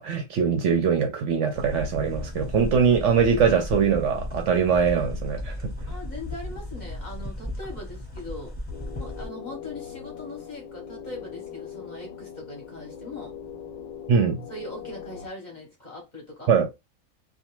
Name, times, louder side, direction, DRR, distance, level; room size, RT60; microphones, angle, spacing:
voice 1, 0.0-5.7 14.1-14.4 16.5-16.7, right 6 dB, 65° right, 0.8 m, -22 dB
sound 1, 1.5-9.3, left 1 dB, 10° left, 0.8 m, -35 dB
voice 2, 5.9-8.6 9.0-13.3 14.5-16.5, left 1 dB, 40° left, 0.8 m, -40 dB
sound 2, 8.7-15.3, left 8 dB, 75° left, 1.0 m, -40 dB
2.4 x 2.2 x 2.9 m
omnidirectional pair, 1.5 m